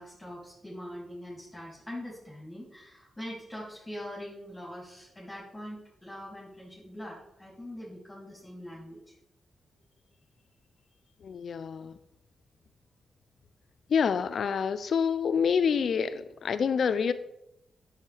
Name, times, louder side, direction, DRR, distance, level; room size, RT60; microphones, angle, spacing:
voice 1, 0.0-9.1, equal, 20° left, -5 dB, 3.2 m, -43 dB
voice 2, 11.2-11.9 13.9-17.1, left 6 dB, 70° left, 13 dB, 0.5 m, -27 dB
9.5 x 6.4 x 3.5 m, 0.85 s
supercardioid pair, 45°, 0 cm